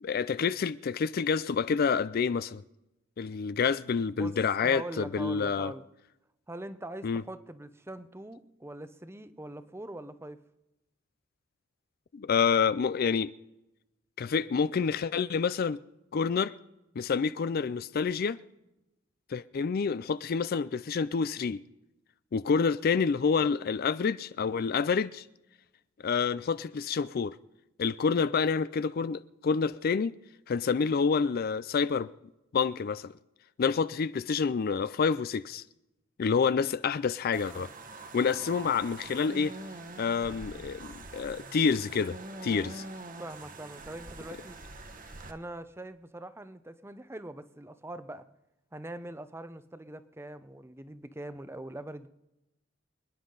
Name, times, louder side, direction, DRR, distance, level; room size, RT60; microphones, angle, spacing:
voice 1, 0.0-2.6 3.2-5.7 7.0-7.2 12.1-13.3 14.2-15.8 16.1-16.5 17.0-18.4 19.3-21.6 22.3-25.2 26.0-27.4 27.8-30.2 30.5-32.1 32.5-33.1 33.6-35.6 36.2-37.7 38.1-39.5 40.0-42.2 42.4-42.8, left 5 dB, 50° left, 0.4 m, -28 dB
voice 2, 4.6-5.8 6.5-10.4 43.2-44.6 45.3-48.2 48.7-52.1, right 1 dB, 15° right, 0.7 m, -42 dB
sound 1, 37.3-45.3, right 3 dB, 45° right, 1.3 m, -44 dB
26.5 x 10.0 x 3.9 m
head